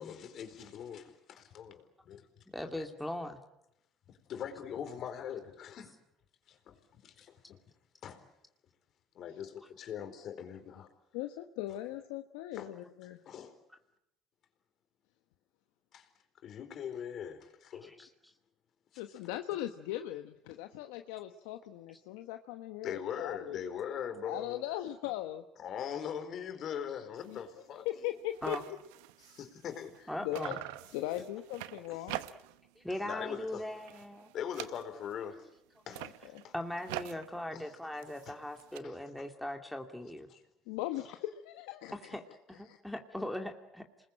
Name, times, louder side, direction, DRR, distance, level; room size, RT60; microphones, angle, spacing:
voice 1, 0.0-2.3 4.1-5.9 6.5-7.6 8.0-8.2 9.1-10.9 12.5-12.7 13.3-13.6 15.9-16.1 16.4-17.9 18.9-19.0 22.8-24.6 25.0-25.1 25.6-27.9 29.3-30.6 31.9-32.0 33.0-33.7 34.3-35.5 35.9-36.1 36.4-36.5 37.5-37.7 38.2-38.3 38.8-38.9 40.3-40.4 41.0-41.1, left 8 dB, 55° left, 8 dB, 4.3 m, -41 dB
voice 2, 2.5-3.4 17.8-18.1 28.4-28.6 30.1-30.6 32.8-34.3 36.5-40.3 42.1-42.2 42.5-43.8, left 1 dB, 5° left, 3 dB, 2.4 m, -39 dB
voice 3, 11.1-13.2 19.0-23.6 24.2-25.4 27.3-27.4 27.7-28.8 30.2-30.6 30.9-32.4 36.0-36.4 40.7-42.2 42.6-42.8, left 14 dB, 80° left, 7 dB, 1.1 m, -39 dB
sound 1, 27.2-27.4 27.8-27.9 28.1-30.1 30.3-32.7 33.0-33.4 33.7-35.2 35.8-38.8, right 16 dB, 80° right, 1.0 m, -45 dB
28.0 x 21.0 x 8.8 m, 0.82 s
supercardioid pair, 80°, 0 cm